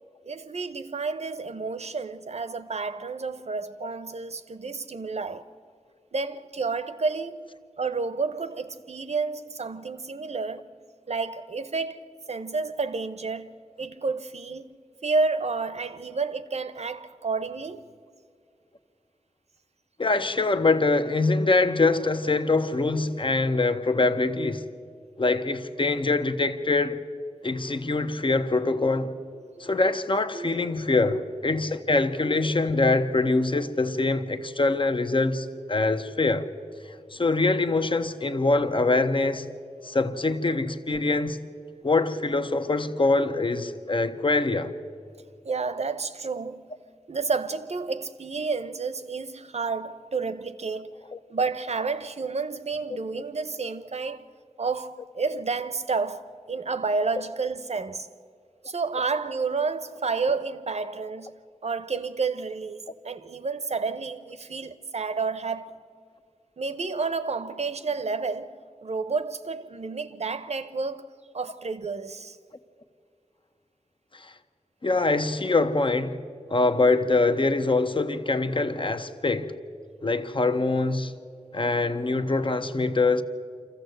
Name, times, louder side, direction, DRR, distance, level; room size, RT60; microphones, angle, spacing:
voice 1, 0.2-5.5 6.1-10.7 11.1-13.5 13.8-14.7 15.0-17.9 29.6-29.7 30.3-30.7 31.0-31.2 45.4-46.7 47.1-51.0 51.3-54.2 54.6-58.1 58.6-61.3 61.6-65.8 66.6-72.4, right 4 dB, 65° right, 0.9 m, -30 dB
voice 2, 20.0-24.6 25.2-27.0 27.4-29.1 29.6-36.5 37.1-39.5 39.8-41.4 41.8-44.7 51.1-51.2 55.3-55.4 74.1-74.3 74.8-76.2 76.5-79.5 80.0-81.1 81.5-83.2, left 3 dB, 45° left, 1.1 m, -24 dB
25.5 x 14.5 x 7.9 m
wide cardioid pair, 55°, 12 cm